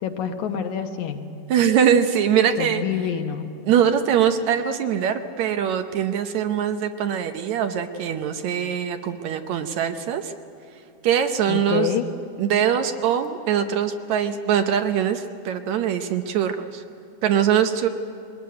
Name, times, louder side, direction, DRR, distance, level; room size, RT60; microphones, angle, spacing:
voice 1, 0.0-1.3 2.6-3.5 11.5-12.1, left 9 dB, 70° left, 6 dB, 2.3 m, -27 dB
voice 2, 1.5-2.8 3.6-10.3 11.0-12.0 12.4-16.8 17.2-17.9, right 8 dB, 70° right, 7 dB, 2.0 m, -22 dB
21.5 x 19.5 x 9.4 m, 2.7 s
omnidirectional pair, 3.7 m